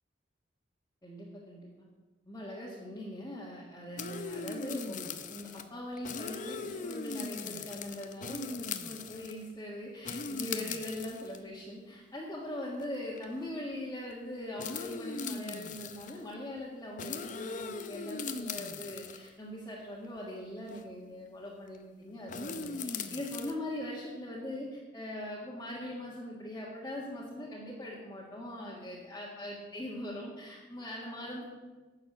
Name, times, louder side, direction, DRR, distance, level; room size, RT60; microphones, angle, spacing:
voice 1, 1.0-1.7 2.3-31.5, left 1 dB, 20° left, -6 dB, 1.8 m, -41 dB
sound 1, 4.0-5.6 6.0-9.5 10.1-11.4 12.2-12.3 12.8-12.9 13.2-13.4 14.6-16.2 17.0-19.3 20.7-20.8 22.3-23.5, left 5 dB, 40° left, 0.7 m, -39 dB
11.5 x 6.8 x 8.0 m, 1.3 s
head